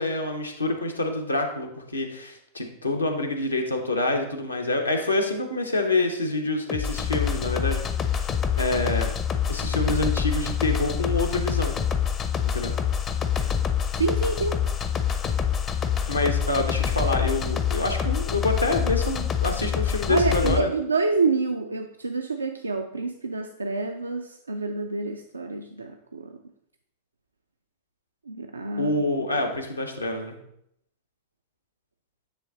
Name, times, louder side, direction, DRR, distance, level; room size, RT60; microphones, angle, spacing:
voice 1, 0.0-7.8 8.5-9.1 9.5-11.8 12.5-12.7 16.1-20.7 28.8-30.4, left 2 dB, 80° left, 3 dB, 0.9 m, -26 dB
sound 1, 6.7-20.6, left 8 dB, 25° left, 0.5 m, -26 dB
voice 2, 13.9-14.6 20.1-26.4 28.3-29.0, right 4 dB, 80° right, 5 dB, 0.4 m, -27 dB
9.5 x 3.2 x 3.8 m, 0.74 s
figure-of-eight pair, 90°, 0 cm